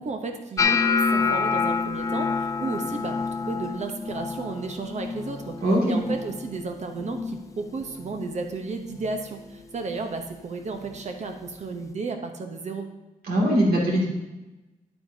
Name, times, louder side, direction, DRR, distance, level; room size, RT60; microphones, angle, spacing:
voice 1, 0.0-5.6 5.9-12.9, right 3 dB, 50° right, 4 dB, 0.9 m, -33 dB
sound 1, 0.6-6.7 6.9-7.5 7.8-8.3 9.0-9.2 10.9-11.0, left 5 dB, 20° left, 0.3 m, -27 dB
voice 2, 5.6-6.0 13.3-14.1, equal, 85° right, -3 dB, 2.4 m, -21 dB
9.8 x 9.1 x 2.8 m, 1.1 s
wide cardioid pair, 165°, 15 cm